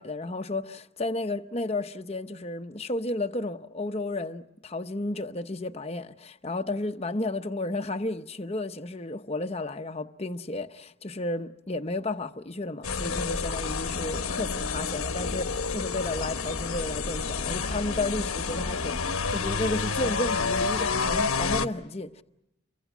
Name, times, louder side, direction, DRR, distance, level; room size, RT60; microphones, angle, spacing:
voice 1, 0.0-22.2, left 2 dB, 30° left, 0.9 m, -32 dB
sound 1, 12.8-21.7, left 4 dB, 90° left, 1.2 m, -29 dB
29.5 x 24.0 x 6.1 m
head